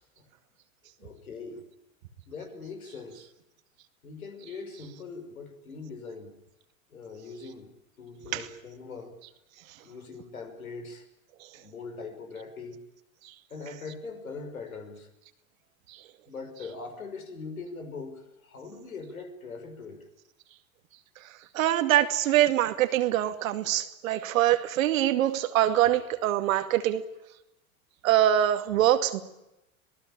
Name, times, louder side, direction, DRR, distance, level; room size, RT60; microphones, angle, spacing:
voice 1, 1.0-1.6 2.3-3.3 4.0-6.3 6.9-7.7 8.0-9.2 9.8-11.1 11.5-12.8 13.5-15.1 16.3-20.1, left 4 dB, 90° left, 6 dB, 5.6 m, -41 dB
voice 2, 21.5-27.0 28.0-29.2, right 12 dB, 70° right, 9 dB, 2.4 m, -24 dB
26.0 x 19.0 x 8.8 m, 0.90 s
hypercardioid pair, 95°, 41 cm